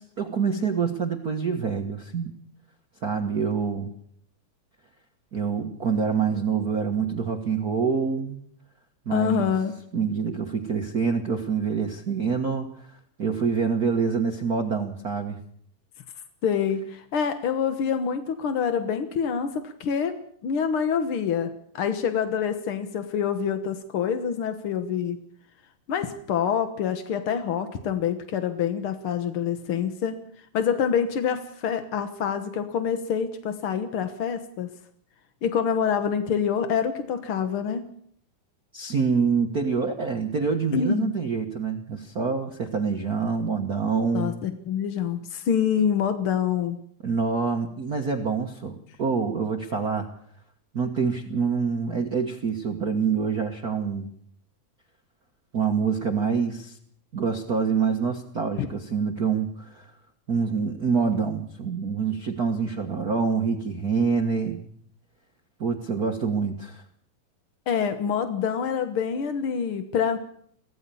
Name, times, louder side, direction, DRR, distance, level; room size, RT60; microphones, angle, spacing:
voice 1, 0.0-2.3 3.0-3.9 5.3-8.4 9.0-9.5 9.9-15.4 38.7-44.4 47.0-50.1 50.7-54.1 55.5-56.8 57.1-59.9 60.3-64.6 65.6-66.8, right 5 dB, 70° right, 3 dB, 0.8 m, -26 dB
voice 2, 9.1-9.7 16.4-25.2 25.9-34.7 35.4-37.9 40.7-41.2 44.1-46.8 58.6-58.7 67.7-70.2, left 7 dB, 60° left, 8 dB, 1.4 m, -26 dB
24.0 x 17.0 x 7.0 m, 0.65 s
omnidirectional pair, 4.0 m